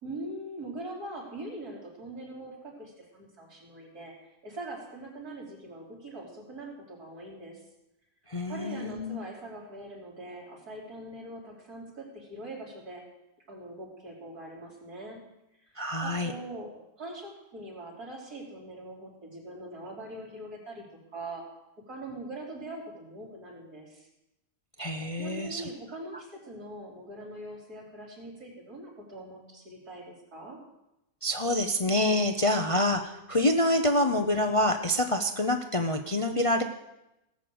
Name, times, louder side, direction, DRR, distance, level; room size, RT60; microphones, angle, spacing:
voice 1, 0.0-7.6 8.4-13.0 13.5-15.2 15.6-15.7 16.0-16.7 17.0-21.4 21.9-24.1 25.2-30.6, right 1 dB, 90° right, -3 dB, 4.1 m, -42 dB
voice 2, 8.3-9.2 15.8-16.3 24.8-25.7 31.2-36.6, left 1 dB, 40° left, 5 dB, 0.5 m, -26 dB
17.5 x 6.5 x 7.8 m, 0.91 s
omnidirectional pair, 1.6 m